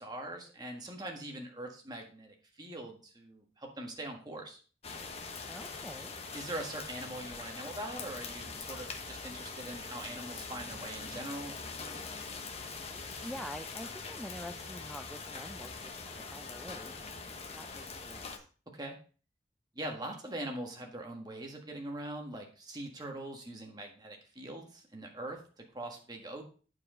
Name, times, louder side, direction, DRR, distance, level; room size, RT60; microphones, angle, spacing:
voice 1, 0.0-4.6 6.3-11.5 18.7-19.0 19.7-26.4, right 1 dB, 25° right, 2 dB, 1.5 m, -42 dB
sound 1, 4.8-18.4, left 4 dB, 35° left, 0.9 m, -43 dB
voice 2, 5.5-6.1 12.9-16.9 17.3-18.4, equal, ahead, 7 dB, 0.3 m, -46 dB
8.7 x 4.8 x 5.0 m, 0.39 s
head